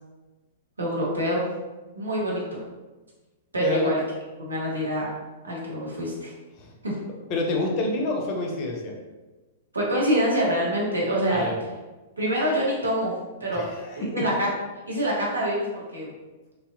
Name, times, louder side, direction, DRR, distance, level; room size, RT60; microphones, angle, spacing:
voice 1, 0.8-1.5 2.0-2.6 3.5-4.0 4.4-5.1 5.4-6.3 6.8-6.9 9.7-11.5 12.2-13.6 13.9-14.5 14.9-16.1, equal, 75° right, -4 dB, 0.7 m, -26 dB
voice 2, 3.6-3.9 6.6-6.7 7.3-9.0 11.3-11.6 13.5-14.3, left 2 dB, 35° left, 0 dB, 0.5 m, -28 dB
2.6 x 2.0 x 2.5 m, 1.2 s
figure-of-eight pair, 105°, 0 cm